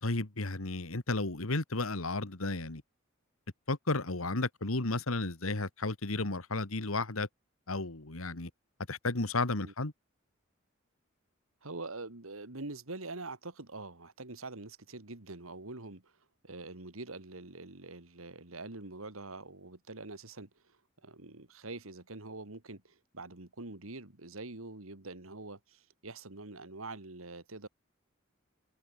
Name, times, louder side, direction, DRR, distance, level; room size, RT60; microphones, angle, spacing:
voice 1, 0.0-2.8 3.7-7.3 7.7-8.5 8.9-9.9, left 2 dB, 85° left, 2.0 m, -33 dB
voice 2, 11.6-16.1 16.4-27.7, right 2 dB, 85° right, 2.5 m, -45 dB
head